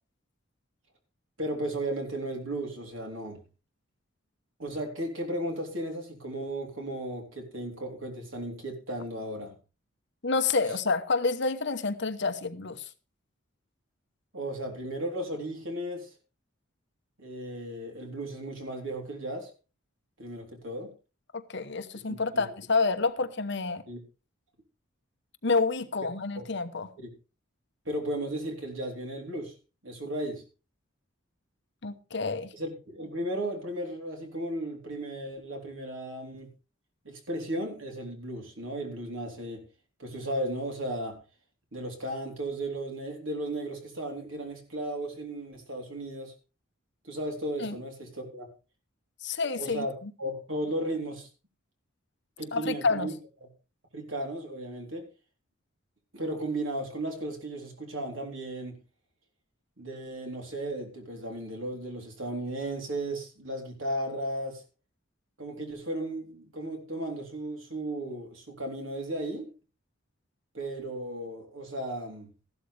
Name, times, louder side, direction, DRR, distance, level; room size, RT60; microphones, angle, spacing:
voice 1, 1.4-3.4 4.6-9.5 14.3-16.1 17.2-19.5 20.2-20.9 22.1-22.4 23.9-24.0 26.4-26.5 27.0-27.1 27.9-29.6 29.8-30.4 32.5-36.5 37.1-39.6 40.0-41.2 41.7-46.3 47.0-48.5 49.6-51.3 52.4-53.2 53.9-55.0 56.1-58.8 59.8-64.6 65.4-69.5 70.5-72.3, right 1 dB, 70° right, 3.6 m, -35 dB
voice 2, 10.2-12.9 21.3-23.8 25.4-26.9 31.8-32.5 47.6-47.7 49.2-50.1 52.5-53.1, left 4 dB, 55° left, 1.0 m, -28 dB
14.5 x 12.0 x 3.4 m
head